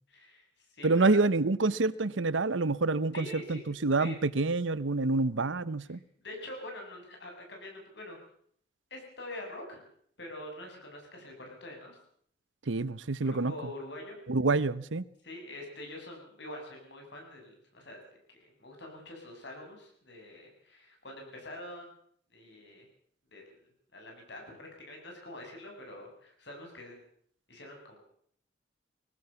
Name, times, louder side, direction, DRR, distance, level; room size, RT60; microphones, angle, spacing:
voice 1, 0.1-1.2 3.1-3.6 4.0-4.2 6.2-8.2 8.9-9.8 10.2-12.0 13.2-14.2 15.2-18.0 18.3-21.9 22.3-22.9 23.3-27.0 27.5-28.0, left 1 dB, 65° left, 7.5 m, -45 dB
voice 2, 0.8-6.0 12.7-13.5 14.3-15.0, right 3 dB, 85° right, 0.9 m, -27 dB
22.0 x 18.0 x 7.0 m
head